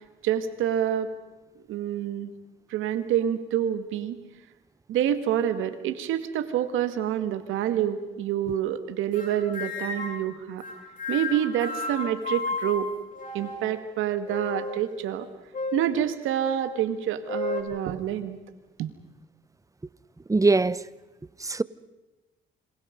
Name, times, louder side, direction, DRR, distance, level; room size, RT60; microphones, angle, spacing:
voice 1, 0.2-1.1 1.7-2.3 2.7-4.2 4.9-10.6 11.1-12.9 13.3-15.3 15.7-18.4 18.8-18.9, right 10 dB, 90° right, 2.1 m, -27 dB
sound 1, 9.1-10.3 10.6-13.8 14.3-14.9 15.5-15.9 16.4-16.6 17.3-17.6, left 3 dB, 40° left, 7.1 m, -33 dB
voice 2, 20.3-20.8 21.4-21.6, right 3 dB, 15° right, 0.8 m, -21 dB
28.0 x 25.5 x 5.3 m
cardioid pair, 90°, 20 cm